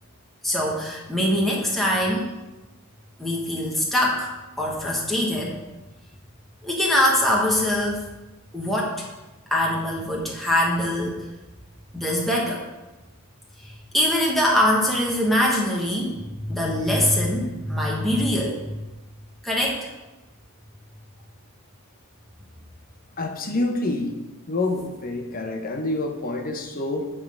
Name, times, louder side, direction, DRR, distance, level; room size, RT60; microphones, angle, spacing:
voice 1, 0.4-2.3 3.2-4.3 4.6-5.5 6.6-8.0 8.5-9.0 9.5-11.2 11.9-12.6 13.6-18.7 19.4-19.9, left 1 dB, ahead, -3 dB, 1.1 m, -23 dB
voice 2, 23.2-24.1 24.5-27.1, left 2 dB, 40° left, 3 dB, 0.9 m, -27 dB
8.9 x 3.8 x 6.2 m, 1.1 s
head